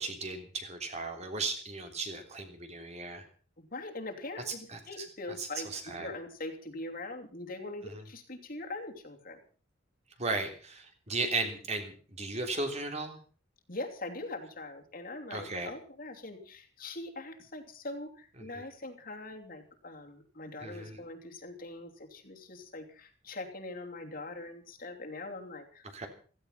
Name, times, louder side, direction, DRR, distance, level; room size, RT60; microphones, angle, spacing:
voice 1, 0.0-3.3 4.5-5.0 5.4-6.1 7.8-8.1 10.2-13.2 15.3-15.7 18.4-18.6 20.6-21.0 25.9-26.1, right 3 dB, 35° right, 5 dB, 3.3 m, -36 dB
voice 2, 3.6-9.4 13.7-26.1, left 2 dB, 45° left, 3 dB, 3.0 m, -42 dB
16.5 x 15.5 x 5.7 m, 0.40 s
head